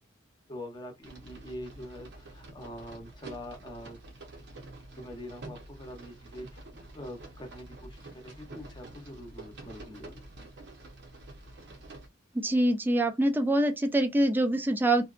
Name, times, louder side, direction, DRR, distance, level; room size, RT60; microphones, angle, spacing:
voice 1, 0.5-4.0 5.0-6.7 6.9-10.2, left 1 dB, 25° left, 0.8 m, -44 dB
sound 1, 1.0-12.1, right 2 dB, 60° right, 0.8 m, -48 dB
voice 2, 12.3-15.0, right 1 dB, 10° right, 0.3 m, -25 dB
2.7 x 2.2 x 2.4 m
head